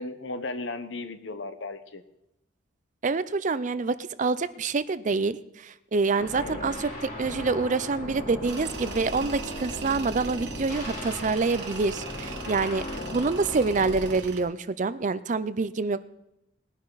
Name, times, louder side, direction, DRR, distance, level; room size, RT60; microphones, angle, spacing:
voice 1, 0.0-2.0 6.4-6.7 13.0-13.3, left 2 dB, 70° left, 10 dB, 1.1 m, -36 dB
voice 2, 3.0-5.4 5.6-12.8 13.1-16.0, right 4 dB, 40° right, 15 dB, 0.5 m, -26 dB
sound 1, 6.2-14.2, left 1 dB, 45° left, 3.2 m, -37 dB
Tools, 8.4-14.4, right 4 dB, 60° right, 1.6 m, -40 dB
20.0 x 10.5 x 4.0 m, 0.88 s
head